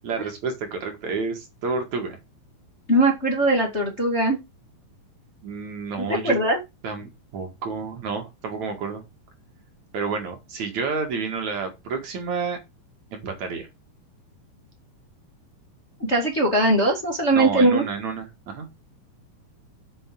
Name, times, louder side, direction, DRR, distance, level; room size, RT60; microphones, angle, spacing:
voice 1, 0.0-2.2 5.4-6.4 6.8-9.0 9.9-12.6 13.1-13.7 17.3-18.7, right 4 dB, 55° right, 4 dB, 3.0 m, -30 dB
voice 2, 2.9-4.4 6.0-6.6 16.1-17.8, right 1 dB, 20° left, 0 dB, 2.0 m, -20 dB
7.8 x 6.4 x 7.6 m, 0.24 s
omnidirectional pair, 4.3 m